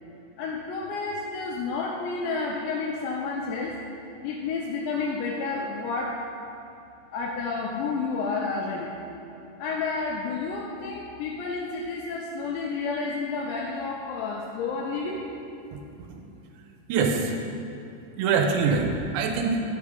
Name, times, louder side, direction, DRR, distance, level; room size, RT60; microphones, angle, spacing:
voice 1, 0.4-3.8 4.2-6.3 7.1-9.0 9.6-15.2, left 4 dB, 80° left, -2 dB, 2.7 m, -30 dB
voice 2, 15.7-16.2 16.9-17.4 18.2-18.9 19.1-19.6, right 5 dB, 80° right, 3 dB, 2.6 m, -24 dB
10.5 x 6.4 x 5.2 m, 2.8 s
omnidirectional pair, 5.7 m